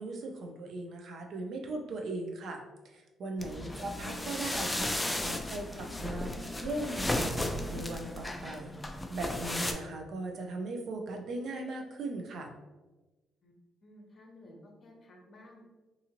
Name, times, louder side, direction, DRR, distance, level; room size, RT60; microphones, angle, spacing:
voice 1, 0.0-6.3 6.6-8.8 9.1-12.5, right 2 dB, 65° right, 2 dB, 0.5 m, -38 dB
sound 1, 3.4-9.7, left 1 dB, 10° left, 0.3 m, -35 dB
voice 2, 3.6-3.9 13.4-13.5 13.8-15.6, left 1 dB, 45° left, 0 dB, 0.7 m, -54 dB
sound 2, 3.9-7.1 7.4-7.7, left 2 dB, 80° left, 0.5 m, -52 dB
2.7 x 2.5 x 2.8 m, 1.2 s
cardioid pair, 90°, 0 cm